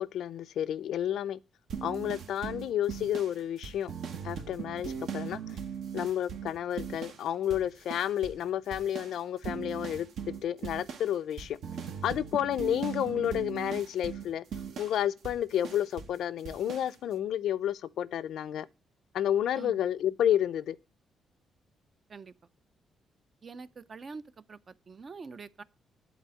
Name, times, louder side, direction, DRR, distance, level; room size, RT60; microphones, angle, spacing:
voice 1, 0.0-1.4 1.8-3.9 4.2-5.4 5.9-11.6 12.0-14.4 14.8-18.7 19.1-20.8, left 10 dB, 75° left, 0.5 m, -31 dB
sound 1, 1.7-7.2 7.5-8.5 8.7-16.2 16.4-16.9, right 7 dB, 70° right, 1.1 m, -39 dB
voice 2, 23.4-24.2 24.5-25.6, right 4 dB, 35° right, 0.5 m, -45 dB
10.5 x 4.1 x 7.5 m
cardioid pair, 135°, 0 cm